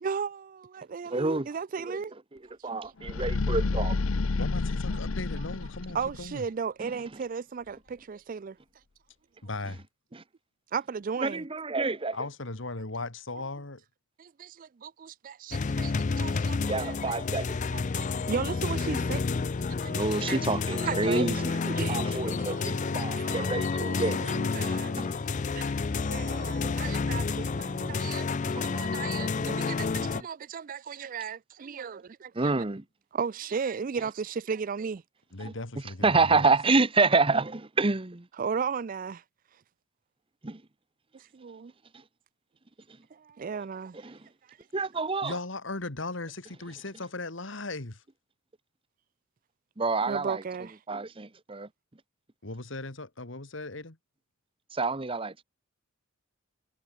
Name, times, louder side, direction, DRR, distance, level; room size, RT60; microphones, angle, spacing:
voice 1, 0.0-2.1 2.6-2.8 5.9-8.6 10.7-11.4 14.2-17.2 17.7-19.2 19.8-20.4 20.8-22.4 23.2-25.1 25.6-25.7 26.0-32.5 33.1-35.0 38.4-39.2 41.1-41.7 43.1-44.0 50.1-50.8, right 6 dB, 40° right, 0.4 m, -35 dB
voice 2, 1.1-1.5 1.8-2.0 2.6-4.0 10.1-10.2 11.2-12.2 16.7-17.6 19.9-21.5 21.9-22.6 22.9-24.4 24.9-25.2 27.7-28.1 28.5-28.7 29.3-29.6 29.8-30.2 32.3-32.8 35.4-35.5 36.0-38.3 40.4-40.6 44.0-44.2 44.7-45.4 49.8-50.4 50.9-51.7 54.7-55.4, right 3 dB, 25° right, 0.9 m, -28 dB
sound 1, 3.0-6.3, left 3 dB, 85° left, 0.8 m, -29 dB
voice 3, 4.4-6.5 9.4-9.8 12.1-13.8 22.3-23.6 35.3-36.5 45.2-48.0 52.4-54.0, left 2 dB, 65° left, 2.1 m, -38 dB
sound 2, 15.5-30.2, left 4 dB, 35° left, 0.4 m, -30 dB
head